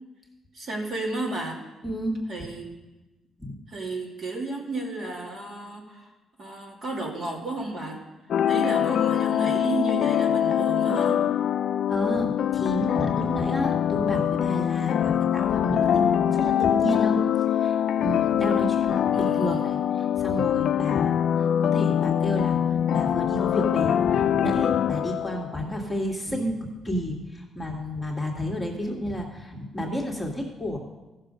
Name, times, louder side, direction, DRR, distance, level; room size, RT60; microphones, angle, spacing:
voice 1, 0.5-1.6 2.3-2.7 3.7-6.1 6.4-8.0 8.5-11.2 19.1-19.9, right 2 dB, 50° right, -2 dB, 2.6 m, -32 dB
voice 2, 1.8-2.2 3.4-3.5 11.9-17.2 17.5-22.6 22.9-30.8, equal, 5° left, -2 dB, 1.9 m, -31 dB
sound 1, 8.3-25.5, left 9 dB, 65° left, 0.3 m, -23 dB
14.5 x 6.5 x 5.1 m, 1.1 s
cardioid pair, 90°, 0 cm